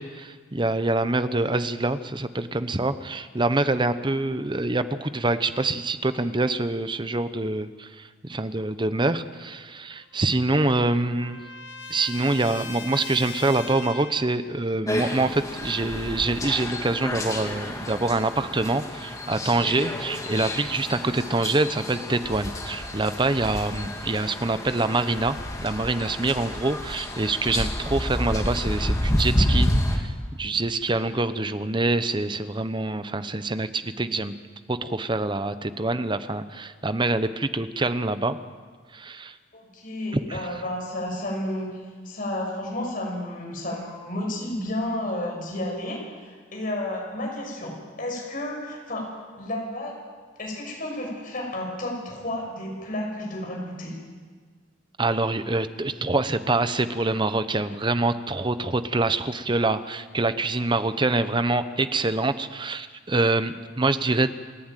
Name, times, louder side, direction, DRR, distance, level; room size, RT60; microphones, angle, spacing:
voice 1, 0.0-11.4 11.9-30.1 30.4-34.3 34.7-38.4 38.9-39.4 40.3-40.5 55.0-64.3, right 2 dB, 25° right, 12 dB, 0.9 m, -25 dB
Trumpet, 9.9-14.3, left 4 dB, 80° left, 1.6 m, -40 dB
sound 1, 14.9-30.0, left 1 dB, 20° left, 2.4 m, -29 dB
voice 2, 39.5-41.7 42.0-49.1 49.4-50.0 50.4-53.9, left 1 dB, 50° left, -1 dB, 7.1 m, -31 dB
28.0 x 11.5 x 9.2 m, 1.5 s
head